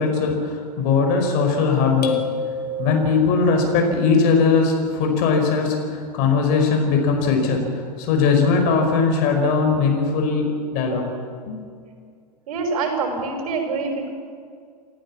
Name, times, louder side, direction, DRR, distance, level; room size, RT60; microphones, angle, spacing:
voice 1, 0.0-2.2 2.8-11.1 11.5-11.6, left 4 dB, 45° left, 3 dB, 5.2 m, -20 dB
sound 1, 2.0-3.5, left 3 dB, 70° left, 2.5 m, -28 dB
voice 2, 12.5-14.1, right 4 dB, 55° right, 4 dB, 5.2 m, -25 dB
28.5 x 14.5 x 7.5 m, 2.2 s
figure-of-eight pair, 95°, 21 cm